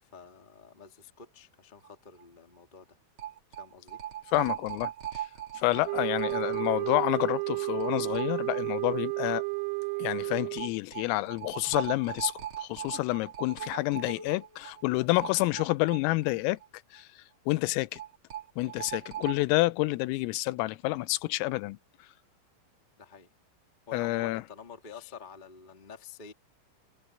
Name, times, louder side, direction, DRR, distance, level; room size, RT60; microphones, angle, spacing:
voice 1, 0.0-3.0 3.6-4.0 4.4-4.5 6.4-6.6 23.0-23.3 23.9-26.3, left 6 dB, 50° left, 0.5 m, -48 dB
sound 1, 1.8-1.9 2.2-2.3 3.2-8.9 9.2-9.3 10.6-16.7 17.0-17.1 17.9-19.4, right 11 dB, 45° right, 1.7 m, -39 dB
voice 2, 4.3-5.2 5.6-9.4 10.0-12.3 12.6-16.6 16.9-17.1 17.5-18.0 18.6-21.8 23.9-24.4, left 20 dB, 90° left, 3.4 m, -28 dB
sound 2, 5.9-10.8, right 28 dB, 80° right, 3.4 m, -32 dB
omnidirectional pair, 5.9 m